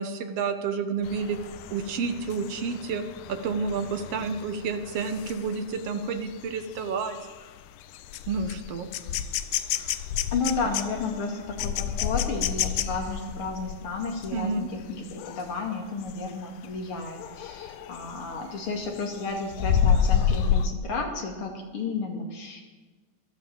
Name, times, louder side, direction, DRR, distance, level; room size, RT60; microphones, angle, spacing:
voice 1, 0.0-1.4 1.7-3.0 3.3-7.2 8.3-8.9 14.3-14.7, right 5 dB, 60° right, 7 dB, 1.9 m, -30 dB
sound 1, 1.1-15.6 16.0-16.3 16.6-18.3 18.7-20.7, left 8 dB, 85° left, 2.2 m, -30 dB
voice 2, 10.3-22.6, left 4 dB, 50° left, 2 dB, 2.7 m, -32 dB
16.0 x 12.0 x 7.3 m, 1.4 s
omnidirectional pair, 3.4 m